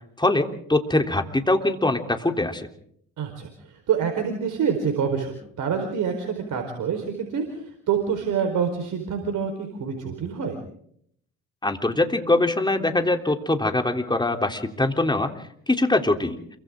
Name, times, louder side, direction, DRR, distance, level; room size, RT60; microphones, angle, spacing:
voice 1, 0.2-2.7 11.6-16.4, left 2 dB, 15° left, 5 dB, 3.4 m, -23 dB
voice 2, 3.2-10.6, right 7 dB, 65° right, 5 dB, 4.5 m, -27 dB
28.5 x 24.0 x 3.8 m, 0.66 s
hypercardioid pair, 60°, 33 cm